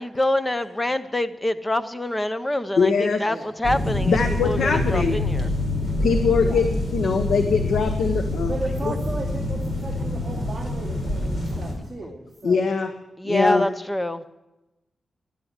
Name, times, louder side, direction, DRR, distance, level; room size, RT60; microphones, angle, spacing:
voice 1, 0.0-5.5 11.5-11.6 13.2-14.2, left 1 dB, 10° left, 11 dB, 0.6 m, -26 dB
voice 2, 2.8-3.2 4.1-5.2 6.0-8.5 8.8-8.9 12.4-12.9 13.2-13.7, left 5 dB, 80° left, 7 dB, 0.9 m, -22 dB
sound 1, 3.6-11.7, left 1 dB, 45° left, 4.4 m, -26 dB
voice 3, 8.5-12.6, right 2 dB, 10° right, -5 dB, 2.4 m, -35 dB
16.0 x 11.5 x 6.6 m, 0.99 s
wide cardioid pair, 180°, 0 cm